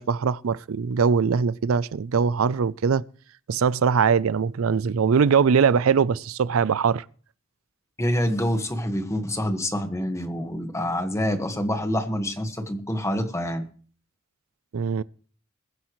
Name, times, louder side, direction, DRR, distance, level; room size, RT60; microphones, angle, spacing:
voice 1, 0.0-3.0 3.5-7.0 14.7-15.0, right 6 dB, 85° right, 0.5 m, -21 dB
voice 2, 8.0-13.6, equal, 15° left, 1.5 m, -26 dB
21.5 x 10.0 x 3.1 m
head